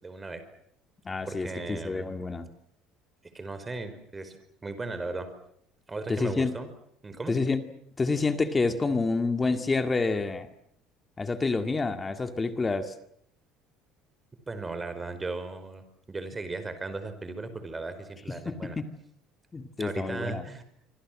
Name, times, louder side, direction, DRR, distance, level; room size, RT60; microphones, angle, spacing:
voice 1, 0.0-0.4 1.3-2.1 3.2-4.3 4.6-5.3 5.9-6.7 7.0-7.4 14.5-18.8 19.8-20.6, right 3 dB, 15° right, 10 dB, 4.9 m, -37 dB
voice 2, 1.1-2.5 6.1-6.5 7.3-7.6 8.0-10.5 11.2-12.9 18.5-18.8 19.5-20.4, left 3 dB, 20° left, 8 dB, 2.1 m, -28 dB
26.0 x 25.5 x 7.6 m, 0.73 s
cardioid pair, 125°, 0 cm